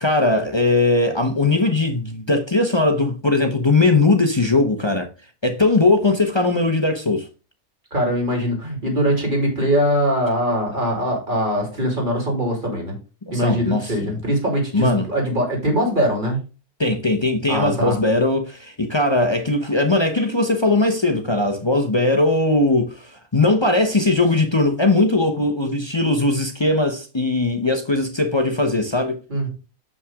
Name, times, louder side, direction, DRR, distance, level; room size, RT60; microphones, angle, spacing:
voice 1, 0.0-5.1 5.4-7.3 13.3-14.1 14.7-15.1 16.8-29.2, left 2 dB, 40° left, 0.4 m, -19 dB
voice 2, 7.9-12.9 13.3-16.4 17.5-18.0 29.3-29.5, equal, 30° right, 2.9 m, -22 dB
7.1 x 5.7 x 3.6 m
omnidirectional pair, 1.7 m